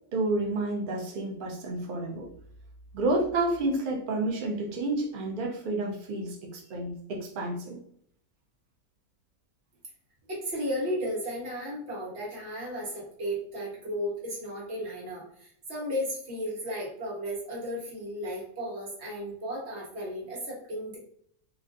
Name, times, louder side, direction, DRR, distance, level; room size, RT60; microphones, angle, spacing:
voice 1, 0.1-2.3 2.9-7.8, right 2 dB, 80° right, 0 dB, 0.4 m, -30 dB
voice 2, 10.3-21.0, equal, 45° right, -5 dB, 1.5 m, -34 dB
3.0 x 2.5 x 2.5 m, 0.68 s
omnidirectional pair, 1.6 m